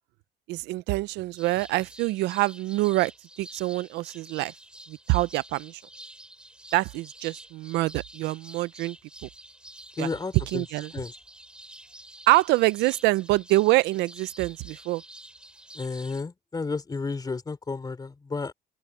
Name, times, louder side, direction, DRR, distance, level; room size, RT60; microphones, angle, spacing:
voice 1, 0.5-3.1 3.4-4.5 4.9-5.8 6.7-9.0 9.2-9.3 10.0-10.1 10.5-10.9 12.3-15.0, right 19 dB, 90° right, 0.6 m, -25 dB
sound 1, 1.4-16.2, right 1 dB, 5° right, 5.4 m, -48 dB
voice 2, 10.0-10.7 10.9-11.1 15.7-18.5, left 4 dB, 25° left, 3.8 m, -32 dB
open air
cardioid pair, 110°, 17 cm